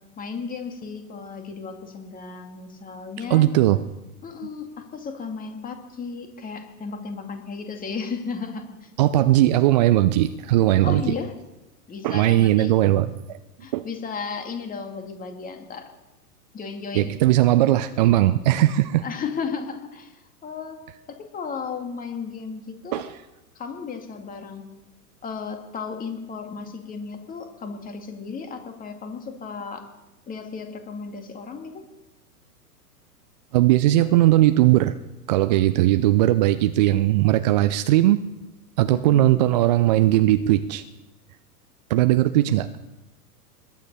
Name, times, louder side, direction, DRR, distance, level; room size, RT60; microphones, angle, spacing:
voice 1, 0.2-3.5 4.2-8.9 10.8-11.3 11.9-12.7 13.6-15.9 16.5-17.1 19.0-20.8 21.1-23.0 23.6-24.6 25.2-29.8 30.3-31.8 38.9-39.3, left 5 dB, 20° left, 5 dB, 2.2 m, -34 dB
voice 2, 3.3-3.8 9.0-11.0 12.0-13.4 13.7-13.8 16.9-19.0 22.9-23.1 33.5-34.9 35.3-38.2 38.8-40.8 41.9-42.7, right 14 dB, 30° right, 11 dB, 0.4 m, -19 dB
21.0 x 9.4 x 5.4 m, 0.99 s
figure-of-eight pair, 105°, 46 cm